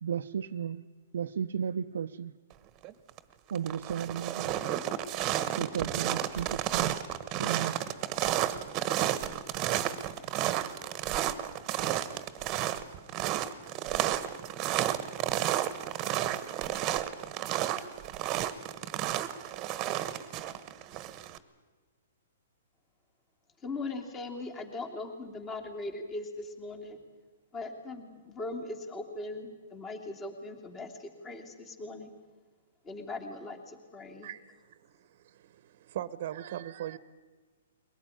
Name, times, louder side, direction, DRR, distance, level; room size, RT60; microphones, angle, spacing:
voice 1, 0.0-0.8 1.1-2.3 3.5-4.6 5.6-7.0 7.4-7.8, right 8 dB, 75° right, 0.7 m, -34 dB
sound 1, 2.8-3.2 3.5-21.4, right 12 dB, 25° right, 1.4 m, -32 dB
voice 2, 23.6-27.0 27.5-32.1 32.8-34.3, left 2 dB, 20° left, 2.9 m, -40 dB
voice 3, 34.2-37.0, right 12 dB, 50° right, 1.1 m, -40 dB
22.5 x 18.0 x 9.9 m
hypercardioid pair, 150°, 0 cm